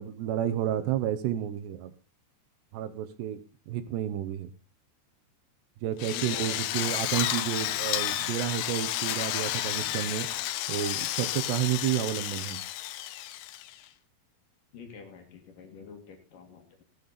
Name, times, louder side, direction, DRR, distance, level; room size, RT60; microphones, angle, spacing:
voice 1, 0.0-1.9 2.7-3.4 3.7-4.5 5.8-10.3 10.7-12.6, right 11 dB, 90° right, 11 dB, 3.2 m, -31 dB
Drill, 6.0-13.9, left 14 dB, 80° left, 2.6 m, -31 dB
voice 2, 6.1-6.9 14.7-16.8, left 6 dB, 60° left, 3 dB, 3.3 m, -47 dB
16.0 x 8.5 x 4.1 m, 0.35 s
omnidirectional pair, 4.7 m